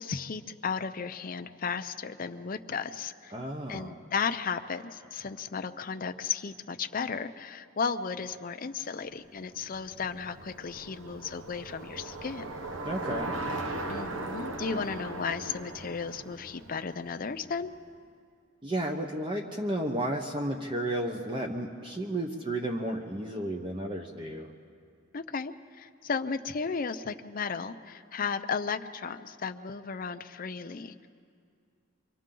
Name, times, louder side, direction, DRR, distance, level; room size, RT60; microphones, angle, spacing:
voice 1, 0.0-3.3 3.7-12.5 13.9-17.7 25.1-31.1, left 5 dB, 45° left, 8 dB, 0.6 m, -34 dB
voice 2, 3.3-4.0 12.8-13.3 18.6-24.5, right 1 dB, 25° right, 2 dB, 0.9 m, -32 dB
Bicycle, 9.2-17.6, right 2 dB, 70° right, 1.2 m, -38 dB
28.0 x 24.0 x 3.8 m, 2.3 s
head